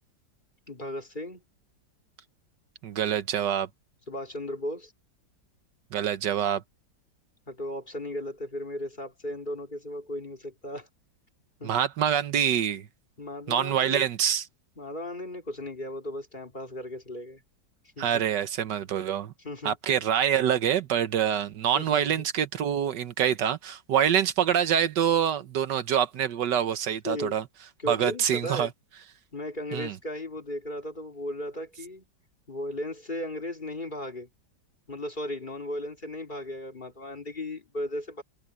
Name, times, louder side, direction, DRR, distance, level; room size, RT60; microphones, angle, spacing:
voice 1, 0.7-1.4 4.1-4.9 7.5-10.9 11.6-11.7 13.2-14.1 14.8-17.4 18.0-18.2 19.4-19.7 21.7-22.2 27.0-27.3 27.8-28.7 29.3-32.1 32.5-34.3 34.9-38.2, left 1 dB, 25° left, 2.9 m, -36 dB
voice 2, 2.8-3.7 5.9-6.6 11.6-12.9 13.5-14.4 18.0-19.3 19.6-27.4 27.9-28.7 29.7-29.9, right 9 dB, 80° right, 1.6 m, -26 dB
omnidirectional pair, 1.9 m